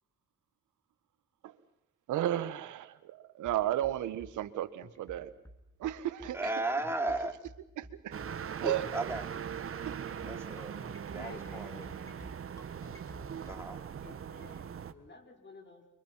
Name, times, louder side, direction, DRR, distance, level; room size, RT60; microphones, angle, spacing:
voice 1, 2.1-5.3 5.8-6.5 7.8-8.1 8.6-8.9 9.8-10.3 11.1-11.2, right 12 dB, 80° right, 12 dB, 1.6 m, -34 dB
sound 1, 3.4-13.6, equal, 10° left, 3.0 m, -51 dB
voice 2, 6.3-7.3 8.6-9.5 10.2-12.3 13.5-13.8, right 2 dB, 10° right, 5 dB, 3.0 m, -36 dB
sound 2, 8.1-14.9, right 8 dB, 45° right, 1.4 m, -41 dB
voice 3, 11.2-12.3 14.0-15.9, left 3 dB, 35° left, 4 dB, 6.1 m, -53 dB
29.5 x 24.5 x 5.8 m, 0.77 s
cardioid pair, 90°, 30 cm